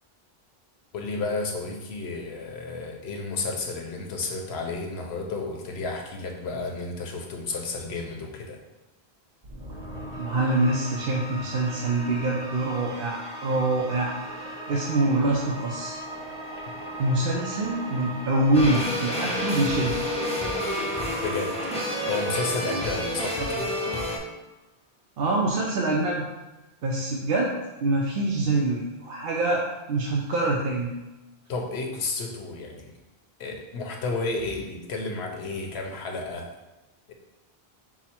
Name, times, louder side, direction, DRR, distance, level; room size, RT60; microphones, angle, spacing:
voice 1, 0.9-8.6 16.6-16.7 21.2-21.5 22.1-23.7 31.5-33.0 33.4-36.5 37.1-37.2, left 3 dB, 90° left, 2 dB, 1.0 m, -32 dB
sound 1, 9.4-23.8, right 1 dB, 40° right, 0.9 m, -38 dB
voice 2, 10.2-16.0 17.0-20.0 23.4-23.5 25.2-26.2 26.8-27.5 27.8-30.9, right 2 dB, 70° right, -2 dB, 0.8 m, -25 dB
sound 2, 18.5-24.2, left 1 dB, 10° left, 0.5 m, -29 dB
6.0 x 2.0 x 4.2 m, 1.1 s
omnidirectional pair, 1.0 m